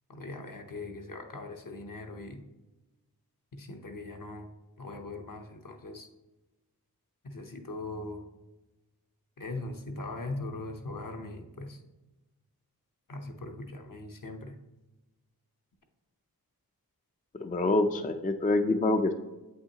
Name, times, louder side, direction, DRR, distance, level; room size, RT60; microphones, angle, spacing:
voice 1, 0.1-2.4 3.5-4.5 4.8-6.1 7.2-8.3 9.4-11.8 13.1-14.6, left 2 dB, 60° left, 4 dB, 0.8 m, -40 dB
voice 2, 17.4-19.1, left 2 dB, 20° left, 6 dB, 0.4 m, -26 dB
7.9 x 5.6 x 2.9 m, 1.1 s
wide cardioid pair, 50°, 37 cm